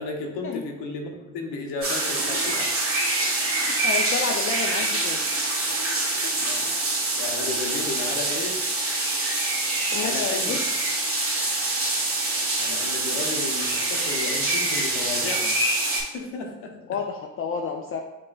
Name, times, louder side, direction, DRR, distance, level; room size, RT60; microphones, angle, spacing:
voice 1, 0.0-2.7 6.3-6.7 7.2-8.7 9.9-10.6 12.6-15.6 16.1-17.0, left 3 dB, 70° left, 3 dB, 0.8 m, -33 dB
sound 1, 1.8-16.0, right 2 dB, 30° right, 1.4 m, -25 dB
voice 2, 3.8-5.2 9.9-10.6 16.9-18.0, left 5 dB, 35° left, 1 dB, 0.4 m, -30 dB
5.2 x 2.9 x 2.3 m, 1.0 s
hypercardioid pair, 65°, 42 cm